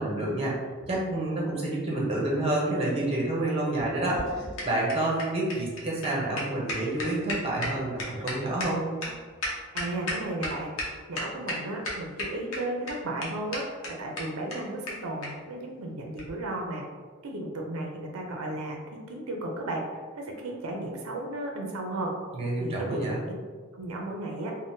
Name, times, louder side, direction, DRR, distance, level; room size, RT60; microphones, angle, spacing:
voice 1, 0.0-8.9 22.3-23.2, right 1 dB, 30° right, -4 dB, 0.7 m, -29 dB
sound 1, 3.8-10.5 10.8-10.9 11.1-11.6 11.8-12.6 12.9-13.0 13.2-13.3 13.5-13.6 13.8-13.9 14.2-14.3 14.5-14.6 14.9-15.0 15.2-15.3 16.1-16.3, left 1 dB, 80° left, 0.8 m, -33 dB
voice 2, 9.7-10.7 11.1-16.9 17.2-22.2 22.6-23.3 23.7-24.5, right 1 dB, 90° right, 1 dB, 0.5 m, -34 dB
3.6 x 2.1 x 2.6 m, 1.5 s
head